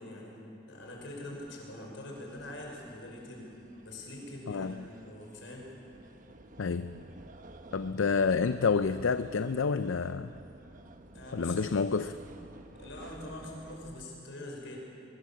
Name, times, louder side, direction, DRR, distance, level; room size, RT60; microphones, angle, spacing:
voice 1, 0.0-3.5 3.8-5.7 11.1-11.7 12.8-14.8, left 1 dB, 70° left, -1 dB, 5.6 m, -44 dB
sound 1, 0.8-14.0, right 1 dB, 40° right, 1.0 m, -52 dB
voice 2, 6.6-7.0 7.7-10.3 11.3-12.2, left 5 dB, 90° left, 11 dB, 0.5 m, -29 dB
23.0 x 21.0 x 7.4 m, 2.8 s
head